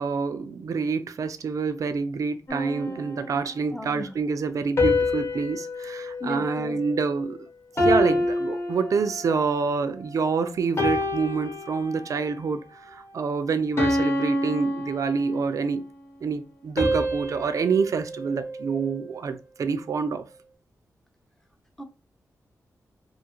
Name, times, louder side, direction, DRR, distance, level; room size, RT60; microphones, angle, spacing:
voice 1, 0.0-7.4 7.8-15.8 16.2-20.2, right 5 dB, 60° right, 0.4 m, -27 dB
sound 1, 2.5-3.8 4.8-7.3 7.8-9.5 10.0-10.3 10.8-12.3 12.8-13.1 13.8-15.7 16.8-19.1, left 1 dB, 45° left, 1.0 m, -28 dB
voice 2, 3.7-4.1 6.2-6.8 7.8-7.9 21.8-21.9, left 2 dB, 5° left, 0.6 m, -36 dB
2.4 x 2.4 x 2.8 m
cardioid pair, 70°, 6 cm